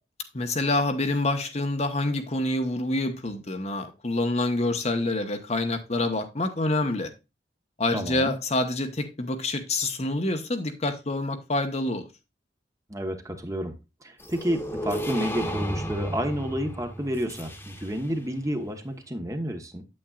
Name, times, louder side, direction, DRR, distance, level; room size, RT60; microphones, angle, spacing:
voice 1, 0.3-7.1 7.8-12.1, left 2 dB, 35° left, 1.1 m, -27 dB
voice 2, 7.9-8.3 12.9-13.7 14.0-19.8, equal, 20° right, 1.2 m, -30 dB
sound 1, 14.2-18.2, equal, 15° left, 1.4 m, -33 dB
8.7 x 8.4 x 2.4 m
head